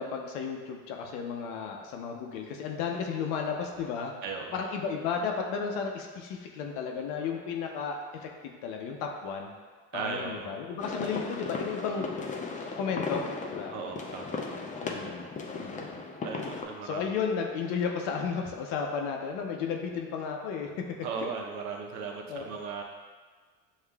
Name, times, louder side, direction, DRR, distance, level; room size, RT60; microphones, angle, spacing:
voice 1, 0.0-4.1 4.5-9.5 9.9-12.1 12.8-13.2 13.5-13.7 14.8-15.3 15.6-16.0 16.8-20.9 21.2-21.3 22.3-22.6, left 6 dB, 80° left, 2 dB, 0.7 m, -33 dB
voice 2, 4.2-4.6 9.9-10.5 13.7-14.4 16.2-17.2 21.0-22.8, right 5 dB, 70° right, 2 dB, 0.7 m, -37 dB
sound 1, 10.8-16.6, left 4 dB, 25° left, 0.4 m, -36 dB
6.6 x 2.4 x 2.3 m, 1.5 s
supercardioid pair, 105°, 30 cm